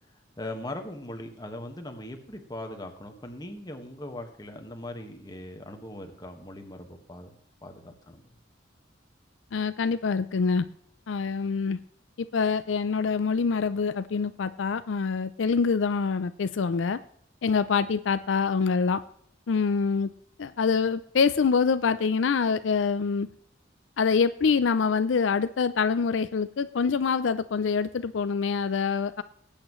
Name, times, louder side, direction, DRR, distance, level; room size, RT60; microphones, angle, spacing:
voice 1, 0.4-7.3 7.6-8.2, left 1 dB, 20° left, 4 dB, 1.6 m, -40 dB
voice 2, 9.5-10.7 11.1-11.8 12.3-17.0 17.4-19.0 19.5-20.1 20.4-23.3 24.0-29.2, left 5 dB, 75° left, 13 dB, 0.5 m, -25 dB
19.0 x 8.8 x 3.1 m, 0.64 s
head